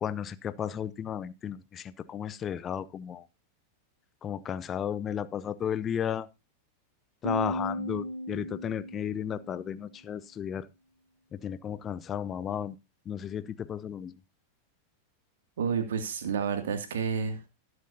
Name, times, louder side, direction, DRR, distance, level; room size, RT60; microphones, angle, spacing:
voice 1, 0.0-3.3 4.2-6.3 7.2-10.7 11.3-12.8 13.0-14.1, left 9 dB, 25° left, 16 dB, 0.8 m, -34 dB
sound 1, 7.2-9.7, equal, 85° right, 1.6 m, -35 dB
voice 2, 15.6-17.5, right 6 dB, 60° right, 7 dB, 2.4 m, -30 dB
20.0 x 7.8 x 2.8 m, 0.25 s
figure-of-eight pair, 90°, 0 cm